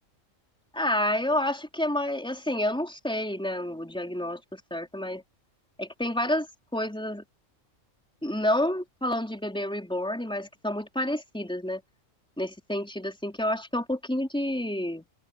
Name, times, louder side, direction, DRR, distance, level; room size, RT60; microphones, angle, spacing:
voice 1, 0.7-5.2 5.8-6.5 6.7-7.2 8.2-11.8 12.4-15.1, left 1 dB, 5° left, 4.4 m, -29 dB
omnidirectional pair, 1.3 m